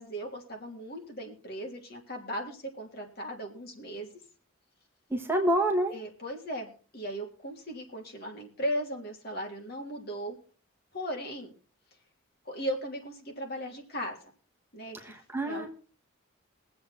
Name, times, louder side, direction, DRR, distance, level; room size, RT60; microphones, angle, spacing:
voice 1, 0.0-4.1 5.9-10.4 10.9-11.5 12.4-14.2 14.7-15.1 15.4-15.7, equal, 50° left, 1 dB, 3.4 m, -37 dB
voice 2, 5.1-5.9 15.0-15.7, right 1 dB, 10° right, 2 dB, 1.5 m, -27 dB
22.5 x 7.8 x 4.4 m, 0.38 s
head